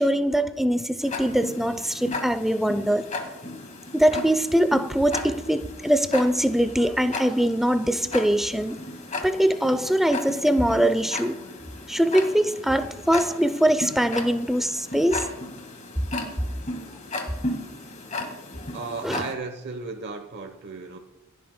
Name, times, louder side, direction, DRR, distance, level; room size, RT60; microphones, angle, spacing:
voice 1, 0.0-3.1 3.9-8.8 9.2-11.4 11.9-15.3 19.0-19.2, equal, ahead, 0.5 m, -22 dB
Tick-tock, 1.0-19.3, left 2 dB, 35° left, 1.8 m, -35 dB
voice 2, 18.7-21.0, right 4 dB, 55° right, 1.0 m, -35 dB
26.5 x 9.3 x 2.2 m
head